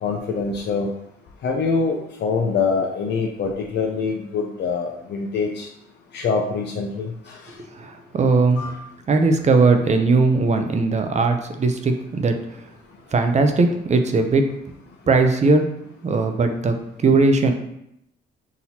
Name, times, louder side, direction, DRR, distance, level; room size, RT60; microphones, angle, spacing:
voice 1, 0.0-0.9 1.4-5.7 6.1-7.4 8.6-8.8, left 4 dB, 60° left, 1 dB, 0.5 m, -24 dB
voice 2, 7.7-8.6 9.1-12.4 13.1-14.5 15.1-17.5, right 3 dB, 35° right, 6 dB, 0.6 m, -19 dB
5.9 x 2.8 x 2.8 m, 0.80 s
cardioid pair, 90°, 20 cm